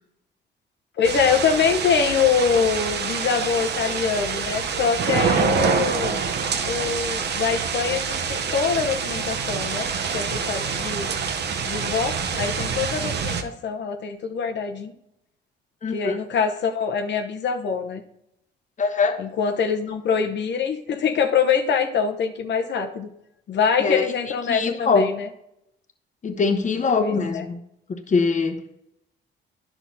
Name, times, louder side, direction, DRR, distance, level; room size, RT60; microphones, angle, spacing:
voice 1, 1.0-6.2 6.6-11.1 11.6-14.9 15.9-18.0 19.2-23.1 23.5-25.3 27.0-27.4, left 6 dB, 65° left, 5 dB, 0.9 m, -24 dB
sound 1, 1.0-13.4, right 6 dB, 60° right, 0.8 m, -26 dB
voice 2, 15.8-16.2 18.8-19.2 23.8-25.1 26.2-27.6 27.9-28.6, left 4 dB, 40° left, 6 dB, 1.1 m, -23 dB
10.0 x 5.9 x 2.7 m, 0.81 s
cardioid pair, 90°, 20 cm